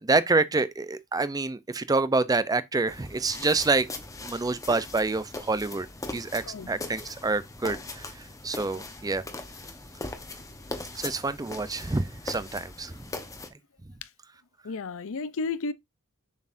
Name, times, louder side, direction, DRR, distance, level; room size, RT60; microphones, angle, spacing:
voice 1, 0.0-3.9 4.2-5.9 6.1-8.0 8.4-9.2 10.9-12.9, right 3 dB, 15° right, 0.5 m, -27 dB
sound 1, 2.9-13.5, left 2 dB, 15° left, 1.0 m, -40 dB
voice 2, 14.6-15.7, left 4 dB, 60° left, 0.6 m, -32 dB
7.0 x 6.3 x 2.6 m
head